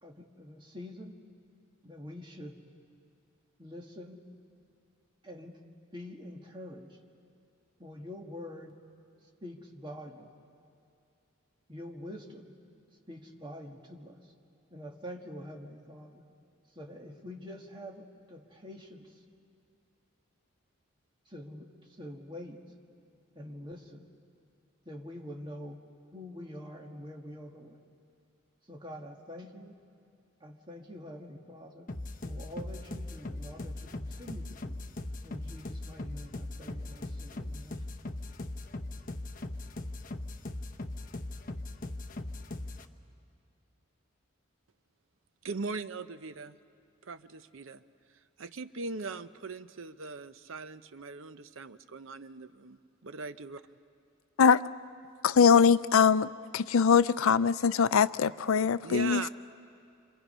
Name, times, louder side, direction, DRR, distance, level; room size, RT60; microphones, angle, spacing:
voice 1, 0.0-1.2 1.8-2.7 3.6-4.2 5.2-5.6 5.9-7.0 7.8-8.8 9.2-10.3 11.7-12.6 13.1-14.3 14.7-16.2 16.7-19.2 21.3-22.6 23.4-24.1 24.9-25.8 26.1-27.8 28.7-29.7 30.4-31.9 32.2-34.8 35.2-37.9, left 1 dB, 20° right, 1 dB, 1.9 m, -45 dB
sound 1, 31.9-42.9, left 2 dB, 40° left, 0.8 m, -40 dB
voice 2, 45.4-46.6 47.0-47.8 48.4-53.6 58.8-59.3, right 4 dB, 70° right, 12 dB, 0.7 m, -40 dB
voice 3, 55.2-56.3 56.5-59.2, left 6 dB, 75° left, 16 dB, 0.5 m, -22 dB
28.0 x 26.0 x 5.6 m, 2.5 s
head